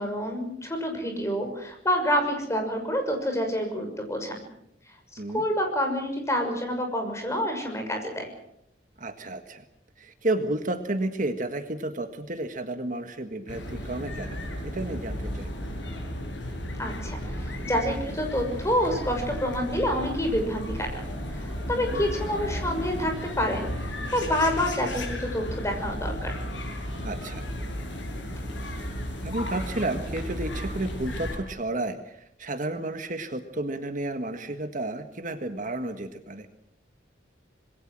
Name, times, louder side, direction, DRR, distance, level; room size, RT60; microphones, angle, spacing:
voice 1, 0.0-4.3 5.3-8.2 16.8-21.0 21.3-26.4, equal, 15° left, 4 dB, 6.2 m, -28 dB
voice 2, 9.0-9.6 10.0-14.4 14.6-15.5 21.8-22.0 27.0-27.4 29.2-36.5, right 2 dB, 45° right, 7 dB, 1.7 m, -32 dB
sound 1, 13.5-31.4, equal, 80° left, 7.9 m, -34 dB
26.5 x 21.5 x 6.3 m, 0.76 s
head